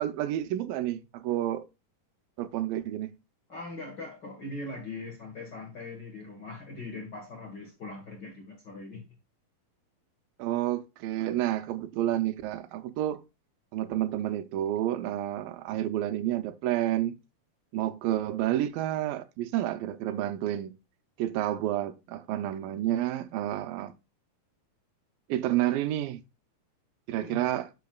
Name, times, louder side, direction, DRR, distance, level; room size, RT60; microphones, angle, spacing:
voice 1, 0.0-1.7 2.4-3.1 10.4-13.2 13.7-17.2 17.7-20.8 21.2-23.9 25.3-26.2 27.1-27.7, right 13 dB, 80° right, 2.4 m, -30 dB
voice 2, 3.5-9.1 27.1-27.4, left 2 dB, 45° left, 1.5 m, -41 dB
12.0 x 5.9 x 2.3 m
omnidirectional pair, 4.0 m